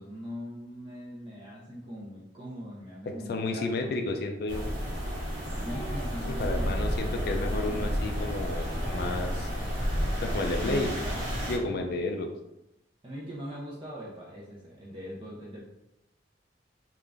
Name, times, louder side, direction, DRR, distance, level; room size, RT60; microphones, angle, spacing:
voice 1, 0.0-4.0 5.4-8.2 10.2-11.2 11.6-12.0 13.0-15.6, equal, 30° right, -6 dB, 0.6 m, -41 dB
voice 2, 3.3-4.6 6.4-9.5 10.2-10.9 11.5-12.3, left 2 dB, 60° left, 4 dB, 0.4 m, -31 dB
sound 1, 4.5-11.6, equal, 55° right, 1.4 m, -31 dB
sound 2, 5.5-11.5, equal, ahead, 1.2 m, -41 dB
3.7 x 2.5 x 3.4 m, 0.88 s
head